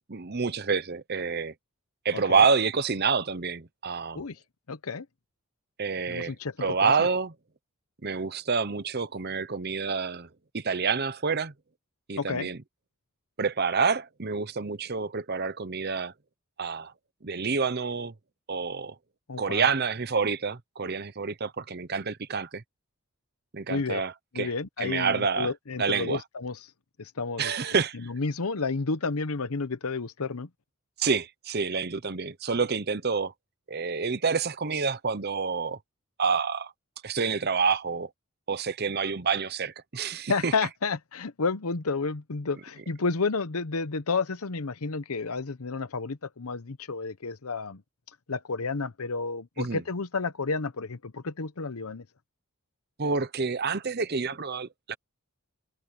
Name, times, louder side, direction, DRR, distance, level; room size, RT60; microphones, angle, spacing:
voice 1, 0.1-1.5 2.0-4.2 5.8-6.3 6.6-7.3 8.0-10.3 10.5-11.5 12.1-12.6 13.4-16.1 16.6-16.9 17.2-18.1 18.5-18.9 19.4-22.6 23.5-24.5 24.8-25.5 25.8-26.2 27.4-28.0 31.0-33.3 33.7-35.8 36.2-36.7 37.0-38.1 38.5-40.5 49.6-49.8 53.0-55.0, right 5 dB, 45° right, 0.9 m, -28 dB
voice 2, 2.1-2.4 4.1-4.4 4.7-5.1 6.1-6.5 6.8-6.9 12.2-12.5 19.3-19.7 23.7-24.0 24.3-26.6 27.0-27.5 28.0-30.5 40.3-47.8 48.3-52.0, left 4 dB, 75° left, 0.9 m, -31 dB
head